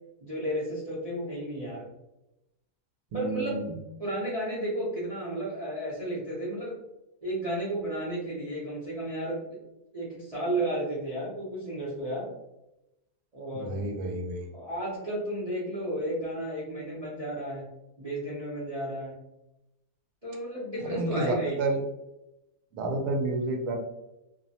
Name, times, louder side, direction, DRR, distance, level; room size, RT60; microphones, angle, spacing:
voice 1, 0.2-1.9 3.1-3.6 4.0-6.8 7.2-9.6 9.9-12.3 13.3-13.8 14.5-17.7 18.0-19.2 20.2-21.6, right 1 dB, 40° right, -8 dB, 0.6 m, -33 dB
voice 2, 3.1-3.8 13.5-14.5 20.9-21.8 22.7-23.8, right 2 dB, 80° right, 3 dB, 1.1 m, -30 dB
2.8 x 2.1 x 2.7 m, 0.91 s
omnidirectional pair, 1.7 m